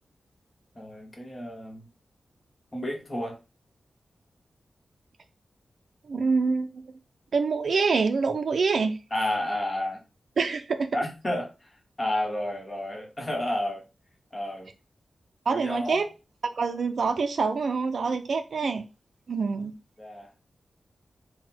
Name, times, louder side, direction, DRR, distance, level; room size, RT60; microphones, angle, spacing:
voice 1, 0.7-1.9 2.7-3.4 9.1-10.0 10.9-11.7 12.0-13.8 14.3-14.7 15.5-16.1 20.0-20.3, left 1 dB, 25° left, 1.0 m, -31 dB
voice 2, 6.1-6.7 7.3-9.0 10.4-10.9 15.5-16.1 16.6-18.8 19.3-19.7, right 4 dB, 55° right, 0.4 m, -25 dB
4.0 x 2.1 x 4.3 m
wide cardioid pair, 165°, 0 cm